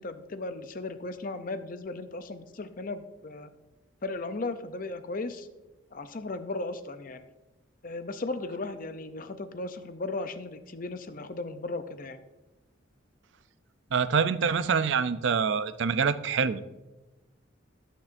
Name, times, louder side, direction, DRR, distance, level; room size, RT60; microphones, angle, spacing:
voice 1, 0.0-3.5 4.0-5.5 5.9-7.3 7.8-12.2, left 2 dB, 45° left, 10 dB, 0.6 m, -36 dB
voice 2, 13.9-16.6, right 6 dB, 65° right, 13 dB, 0.5 m, -25 dB
17.0 x 6.6 x 2.6 m, 1.1 s
head